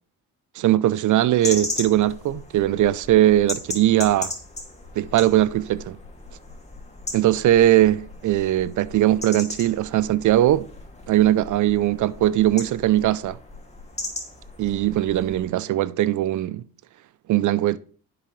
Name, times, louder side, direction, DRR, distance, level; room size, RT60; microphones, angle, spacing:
voice 1, 0.6-4.3 5.0-6.0 7.1-10.7 11.1-13.4 14.6-16.6 17.3-17.8, right 13 dB, 60° right, 0.5 m, -20 dB
sound 1, 1.4-15.5, left 2 dB, 20° left, 2.4 m, -37 dB
10.5 x 7.7 x 3.2 m
supercardioid pair, 75°, 35 cm